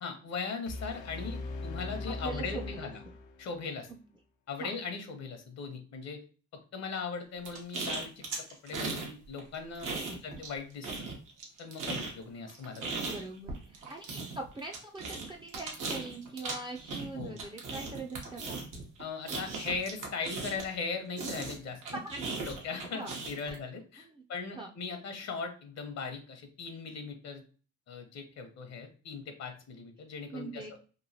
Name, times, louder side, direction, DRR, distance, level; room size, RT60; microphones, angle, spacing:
voice 1, 0.0-3.0 3.4-3.9 4.5-6.2 6.5-8.2 8.6-9.9 10.2-11.1 11.6-13.1 17.1-17.4 19.0-22.0 22.5-27.4 27.9-30.6, left 5 dB, 60° left, 6 dB, 0.8 m, -39 dB
sound 1, 0.7-3.7, left 3 dB, 90° left, 0.5 m, -40 dB
voice 2, 2.2-3.1 3.9-4.0 4.6-4.7 9.9-10.4 13.1-18.6 21.9-22.3 22.9-23.1 23.4-23.6 24.0-24.2 24.5-24.7 30.3-30.7, right 3 dB, 15° right, 1 dB, 0.4 m, -42 dB
sound 2, 7.4-9.1 9.4-10.6 10.8-20.8 21.2-23.5, right 3 dB, 85° right, 1.0 m, -38 dB
3.0 x 2.5 x 2.7 m, 0.37 s
cardioid pair, 90°, 30 cm